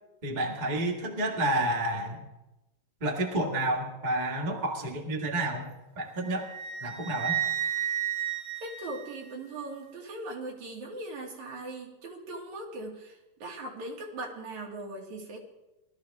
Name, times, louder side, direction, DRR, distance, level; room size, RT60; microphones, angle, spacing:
voice 1, 0.2-2.2 3.0-6.5 6.8-7.4, right 1 dB, 20° right, 0 dB, 1.5 m, -30 dB
Wind instrument woodwind instrument, 6.2-9.6, right 11 dB, 55° right, 2.3 m, -33 dB
voice 2, 8.6-15.4, right 2 dB, 75° right, -1 dB, 3.5 m, -39 dB
19.0 x 13.0 x 3.5 m, 0.97 s
omnidirectional pair, 3.3 m